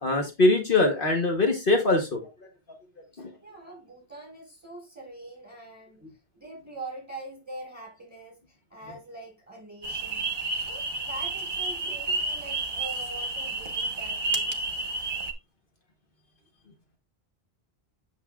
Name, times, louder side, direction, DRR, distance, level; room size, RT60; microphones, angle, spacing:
voice 1, 0.0-2.5 3.2-3.3, left 2 dB, 60° left, 1.3 m, -23 dB
voice 2, 3.1-6.0 6.3-10.3 10.6-14.7, right 2 dB, 15° right, 5.1 m, -43 dB
sound 1, 9.8-15.3, right 3 dB, 55° right, 1.0 m, -30 dB
8.0 x 6.5 x 2.4 m
omnidirectional pair, 1.0 m